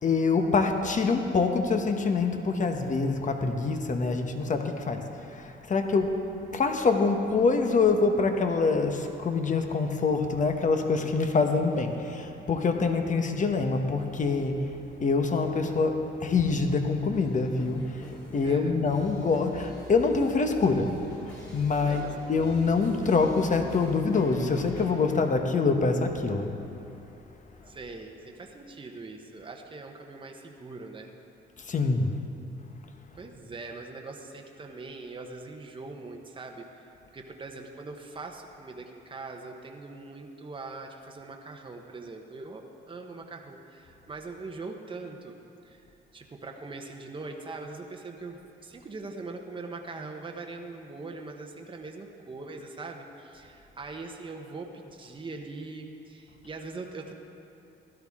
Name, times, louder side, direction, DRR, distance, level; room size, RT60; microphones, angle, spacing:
voice 1, 0.0-6.2 6.5-14.6 15.0-26.5 31.6-32.1, left 4 dB, 40° left, 5 dB, 1.1 m, -25 dB
sound 1, 14.0-28.5, left 1 dB, 20° left, 2.8 m, -47 dB
voice 2, 18.4-18.7 21.9-22.2 27.7-31.1 33.1-45.4 45.6-57.1, right 3 dB, 25° right, 2 dB, 1.0 m, -42 dB
16.5 x 12.0 x 3.7 m, 2.9 s
cardioid pair, 90°, 20 cm